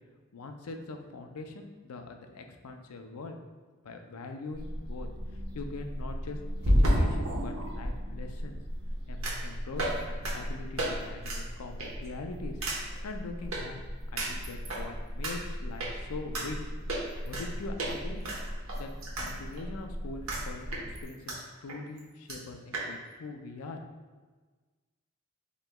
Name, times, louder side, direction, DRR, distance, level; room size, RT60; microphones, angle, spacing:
voice 1, 0.3-3.4 3.8-5.1 5.5-6.4 6.6-8.6 9.1-12.6 13.0-13.8 14.1-16.7 17.2-18.3 18.7-18.9 19.2-23.8, left 3 dB, 90° left, 4 dB, 0.5 m, -42 dB
fast walking with crutches on tile, 4.1-4.2 6.6-7.9 9.2-9.5 9.8-10.0 10.2-10.3 10.8-10.9 11.2-11.4 11.8-12.1 12.6-12.8 13.5-13.6 14.2-14.8 15.2-15.3 15.8-15.9 16.3-16.5 16.9-17.5 17.8-17.9 18.2-19.3 19.6-19.7 20.3-20.4 20.7-21.4 21.7-21.8 22.0-22.1 22.3-22.4 22.7-22.9, equal, 70° right, 1.0 m, -29 dB
sound 1, 4.5-21.0, equal, 45° right, 1.0 m, -39 dB
7.8 x 3.0 x 2.2 m, 1.4 s
head